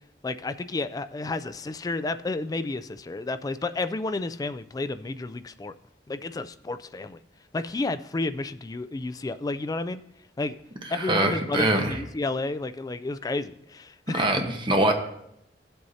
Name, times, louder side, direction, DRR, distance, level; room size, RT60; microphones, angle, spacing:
voice 1, 0.2-5.7 6.1-7.2 7.5-10.0 10.4-10.6 10.9-14.4, left 2 dB, 20° left, 11 dB, 0.3 m, -31 dB
voice 2, 10.8-12.0 14.1-14.9, right 1 dB, 30° right, 3 dB, 1.1 m, -24 dB
16.0 x 7.8 x 2.8 m, 0.78 s
head